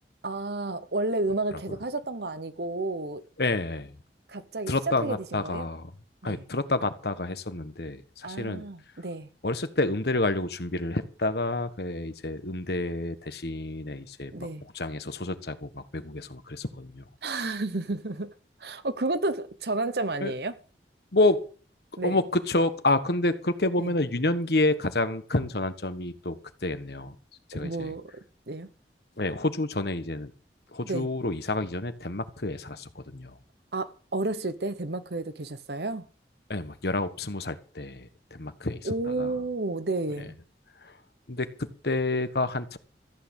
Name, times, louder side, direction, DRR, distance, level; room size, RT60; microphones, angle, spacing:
voice 1, 0.2-3.2 4.3-5.7 6.2-6.4 8.2-9.3 14.3-14.6 17.2-18.3 18.6-20.6 22.0-22.2 23.8-23.9 27.5-28.1 28.5-28.7 30.8-31.1 33.7-36.1 38.8-40.4, right 2 dB, 65° right, 1.1 m, -31 dB
voice 2, 3.4-3.9 4.7-5.9 6.2-8.6 9.4-14.5 14.7-17.4 20.2-20.3 21.1-21.4 22.0-26.4 26.6-27.2 27.5-27.9 29.2-30.3 30.7-33.3 36.5-38.8 39.2-39.3 40.8-40.9 41.3-42.8, left 2 dB, 65° left, 1.4 m, -29 dB
14.5 x 8.6 x 7.2 m
head